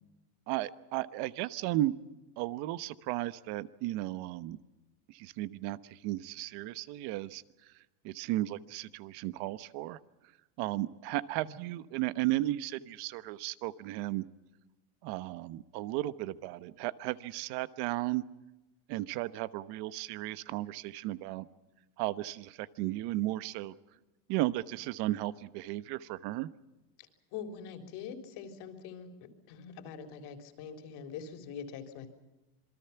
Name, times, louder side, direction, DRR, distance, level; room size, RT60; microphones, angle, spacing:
voice 1, 0.5-1.9 2.4-4.6 5.1-7.7 8.0-10.0 10.6-14.2 15.0-18.2 18.9-21.5 22.0-23.7 24.3-26.5, right 16 dB, 50° right, 15 dB, 1.2 m, -35 dB
voice 2, 27.3-32.1, left 7 dB, 50° left, 5 dB, 3.9 m, -44 dB
27.0 x 22.5 x 5.9 m, 1.1 s
supercardioid pair, 140°, 49 cm